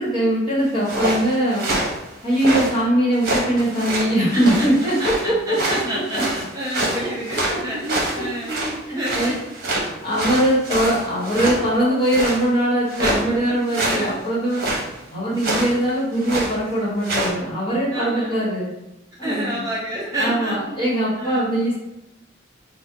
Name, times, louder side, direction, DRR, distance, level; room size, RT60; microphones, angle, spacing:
voice 1, 0.0-1.7 2.2-5.6 7.3-7.6 8.2-8.3 9.1-9.4 10.0-14.6 15.1-18.7 19.2-19.6 20.2-21.8, right 1 dB, 25° left, -7 dB, 1.3 m, -21 dB
sound 1, 0.7-2.8 3.1-5.2 5.5-8.7 9.0-11.6 12.0-12.5 12.9-13.2 13.7-14.1 14.5-14.8 15.4-15.7 16.1-16.5 17.0-17.3, right 1 dB, 55° right, 0.9 m, -25 dB
voice 2, 4.3-9.4 13.0-13.6 13.9-14.2 17.9-18.4 19.2-20.8 21.2-21.4, right 1 dB, 20° right, -5 dB, 0.5 m, -29 dB
3.3 x 2.2 x 3.9 m, 0.93 s
head